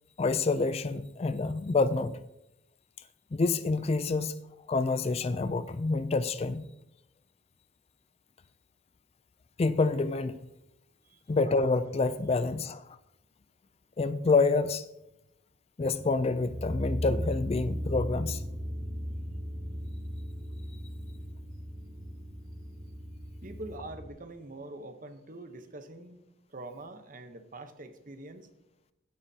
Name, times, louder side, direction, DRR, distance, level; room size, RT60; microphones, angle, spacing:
voice 1, 0.2-2.2 3.3-4.4 4.7-6.7 9.6-10.4 11.3-12.8 14.0-14.8 15.8-18.4, left 3 dB, 30° left, 0.3 m, -27 dB
sound 1, 15.8-24.1, equal, 65° right, 2.9 m, -37 dB
voice 2, 23.4-26.2 26.5-28.5, right 2 dB, 40° right, 0.9 m, -44 dB
16.0 x 9.6 x 2.8 m
head